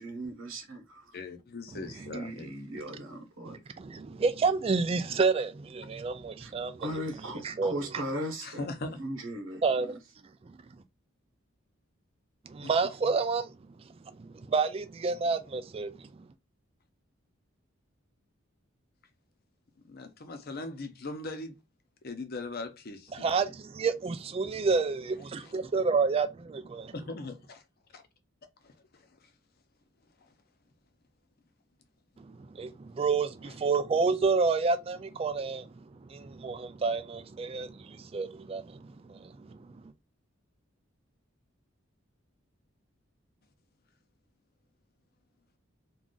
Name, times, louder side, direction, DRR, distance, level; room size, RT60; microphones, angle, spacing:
voice 1, 0.0-1.2 1.9-3.6 6.4-6.5 6.8-8.6 9.0-10.0, right 1 dB, 80° right, 0.9 m, -38 dB
voice 2, 1.1-2.5 8.4-9.0 12.6-12.7 19.9-21.6 22.0-23.3 25.4-25.5 26.9-27.6 27.9-28.0 28.6-29.1 33.4-33.5, left 2 dB, 50° left, 0.6 m, -40 dB
voice 3, 3.5-6.9 7.4-7.7 9.6-10.0 12.5-13.5 14.2-16.1 23.1-26.9 32.2-39.7, right 4 dB, 30° right, 0.3 m, -29 dB
2.5 x 2.3 x 3.7 m
head